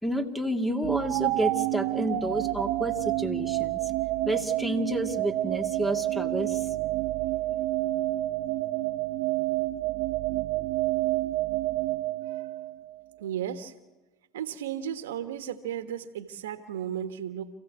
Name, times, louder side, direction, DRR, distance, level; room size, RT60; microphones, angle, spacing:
voice 1, 0.0-3.8 4.3-6.6, right 1 dB, 5° left, 6 dB, 2.2 m, -30 dB
sound 1, 0.8-12.9, right 17 dB, 65° right, 0.8 m, -29 dB
voice 2, 13.2-13.7 14.3-17.5, right 9 dB, 85° right, 10 dB, 1.5 m, -34 dB
28.0 x 15.5 x 8.3 m, 1.1 s
hypercardioid pair, 90°, 0 cm